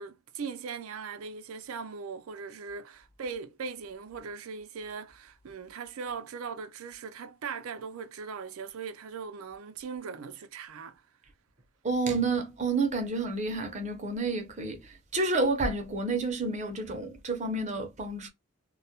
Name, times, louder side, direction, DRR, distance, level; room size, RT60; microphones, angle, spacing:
voice 1, 0.0-11.0, right 5 dB, 85° right, 0.4 m, -39 dB
voice 2, 11.8-18.3, right 3 dB, 35° right, 0.6 m, -30 dB
2.2 x 2.1 x 2.7 m
head